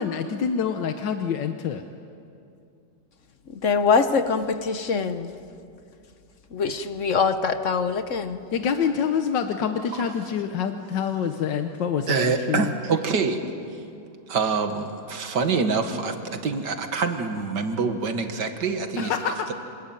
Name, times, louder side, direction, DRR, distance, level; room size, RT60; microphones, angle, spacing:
voice 1, 0.0-1.8 8.5-12.7 19.0-19.5, left 7 dB, 85° left, 6 dB, 1.7 m, -26 dB
voice 2, 3.6-5.3 6.5-8.4, left 5 dB, 50° left, 10 dB, 1.2 m, -23 dB
voice 3, 12.1-13.4 14.3-19.3, right 4 dB, 75° right, 6 dB, 2.3 m, -26 dB
26.5 x 20.5 x 9.2 m, 2.5 s
omnidirectional pair, 1.9 m